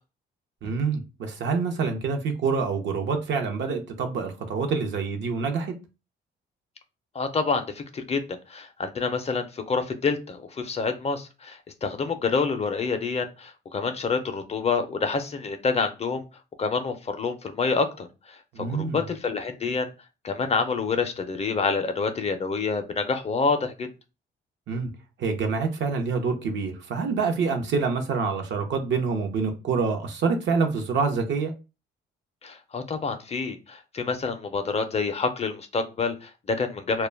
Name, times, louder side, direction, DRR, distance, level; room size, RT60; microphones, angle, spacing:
voice 1, 0.6-5.7 18.5-19.0 24.7-24.9 25.2-31.5, right 5 dB, 65° right, 0.7 m, -26 dB
voice 2, 7.1-8.2 8.5-16.2 16.6-19.9 20.2-23.9 32.4-37.1, left 4 dB, 30° left, 0.4 m, -27 dB
2.2 x 2.1 x 3.2 m
cardioid pair, 90°, 20 cm